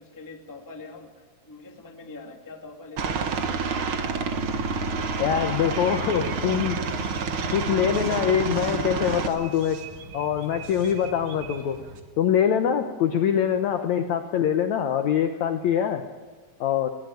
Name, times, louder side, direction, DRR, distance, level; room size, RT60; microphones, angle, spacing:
voice 1, 0.0-3.8 13.0-13.1, left 3 dB, 10° left, 2 dB, 1.0 m, -44 dB
Aircraft, 3.0-9.3, right 4 dB, 80° right, 1.1 m, -28 dB
sound 1, 5.0-12.0, right 5 dB, 55° right, 1.7 m, -42 dB
voice 2, 5.2-6.8 7.5-9.8 10.1-11.8 12.2-16.0 16.6-16.9, left 9 dB, 75° left, 7 dB, 1.7 m, -24 dB
21.0 x 17.5 x 9.2 m, 1.5 s
omnidirectional pair, 4.5 m